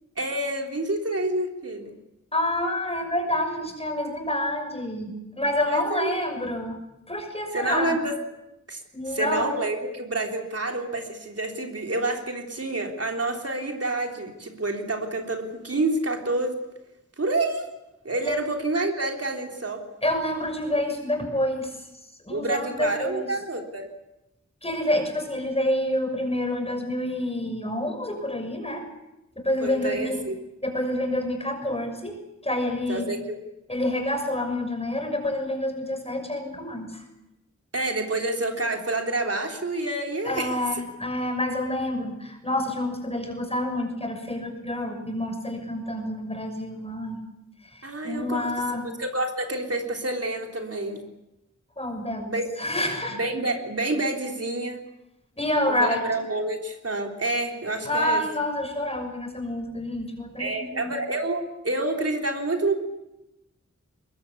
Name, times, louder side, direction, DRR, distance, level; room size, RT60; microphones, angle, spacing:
voice 1, 0.2-1.9 5.6-6.2 7.5-8.1 8.7-8.8 9.1-16.6 17.2-17.7 18.0-19.8 22.3-23.9 29.6-30.4 32.9-33.4 37.7-40.8 47.8-48.5 49.0-51.0 52.3-52.5 53.1-54.8 55.7-58.2 60.4-62.8, right 2 dB, 55° right, 2 dB, 3.6 m, -28 dB
voice 2, 2.3-6.8 7.1-8.0 8.9-9.5 18.2-18.4 20.0-21.8 22.2-23.3 24.6-28.8 29.4-30.2 30.6-33.1 33.7-37.0 40.2-47.2 47.7-48.9 51.8-53.2 55.4-56.0 57.8-60.9, left 1 dB, 20° left, 5 dB, 6.5 m, -28 dB
22.5 x 22.0 x 8.5 m, 0.91 s
wide cardioid pair, 85°, 29 cm